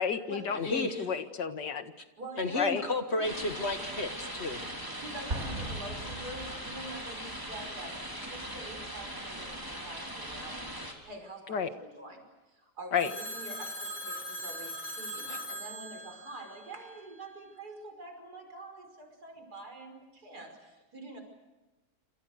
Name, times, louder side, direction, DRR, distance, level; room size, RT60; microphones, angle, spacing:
voice 1, 0.0-1.9 2.5-2.8 11.5-11.7 12.9-13.1 15.3-15.4, left 7 dB, 90° left, 9 dB, 2.2 m, -31 dB
voice 2, 0.5-1.1 2.4-4.6, left 2 dB, 40° left, 8 dB, 1.7 m, -32 dB
voice 3, 2.2-3.5 5.0-21.2, right 2 dB, 65° right, 4 dB, 6.0 m, -46 dB
sound 1, 3.2-10.9, equal, 10° right, 4.0 m, -40 dB
Explosion, 5.3-7.1, right 1 dB, 45° right, 3.0 m, -39 dB
Telephone, 13.0-17.2, equal, 60° left, 5.4 m, -40 dB
28.0 x 27.5 x 6.6 m, 1.1 s
omnidirectional pair, 1.8 m